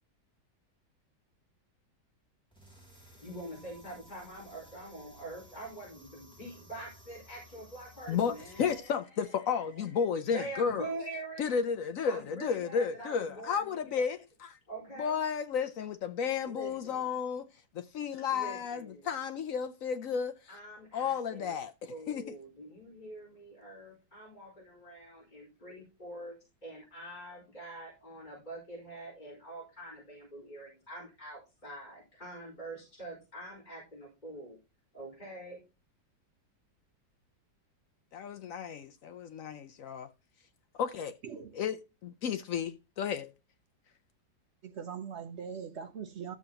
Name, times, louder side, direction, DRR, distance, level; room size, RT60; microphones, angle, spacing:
sound 1, 2.5-8.8, right 1 dB, 5° left, 2.4 m, -56 dB
voice 1, 3.1-8.8 9.2-9.8 10.2-11.6 12.0-14.1 14.7-15.2 16.4-17.1 18.3-19.1 20.5-21.6 21.9-26.3 26.6-34.6 34.9-35.6, right 1 dB, 25° left, 4.7 m, -45 dB
voice 2, 8.1-10.8 11.4-14.6 15.0-17.5 17.7-20.4 20.9-22.3 38.1-40.1 40.7-41.2 41.5-43.3, left 6 dB, 70° left, 0.8 m, -33 dB
voice 3, 41.2-41.5 44.6-46.3, right 7 dB, 65° right, 0.7 m, -41 dB
13.0 x 7.2 x 2.9 m
omnidirectional pair, 2.0 m